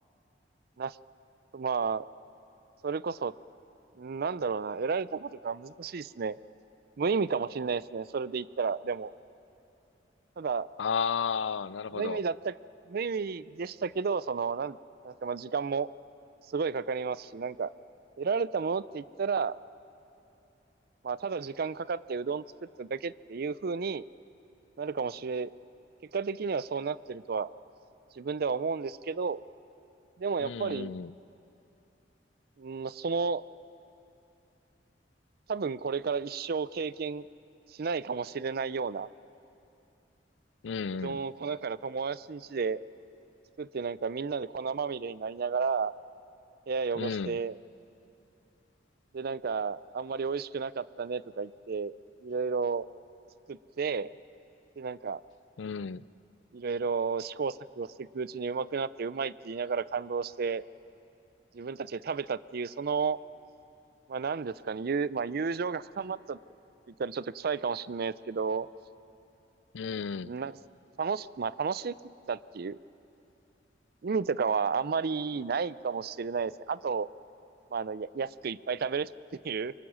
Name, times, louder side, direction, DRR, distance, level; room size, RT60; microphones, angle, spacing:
voice 1, 1.5-2.1 2.8-3.3 4.0-6.4 7.0-9.1 10.4-10.7 11.9-12.5 12.9-14.8 15.0-15.9 16.5-17.7 18.2-19.6 21.0-22.4 22.8-24.0 24.8-25.5 26.1-27.5 28.2-29.4 30.2-30.9 32.6-33.4 35.5-37.2 37.8-39.1 41.0-42.8 43.6-45.9 46.7-47.6 49.1-51.9 52.2-52.9 53.5-54.1 54.8-55.2 56.5-60.6 61.5-63.2 64.1-66.4 67.0-68.7 70.2-70.5 71.0-71.9 72.3-72.8 74.0-77.1 77.7-79.1 79.4-79.7, right 5 dB, 55° right, 17 dB, 0.5 m, -32 dB
voice 2, 10.8-12.2 30.4-31.1 40.6-41.2 46.9-47.4 55.6-56.0 69.7-70.3, left 6 dB, 80° left, 18 dB, 0.5 m, -33 dB
28.0 x 23.5 x 6.3 m, 2.8 s
head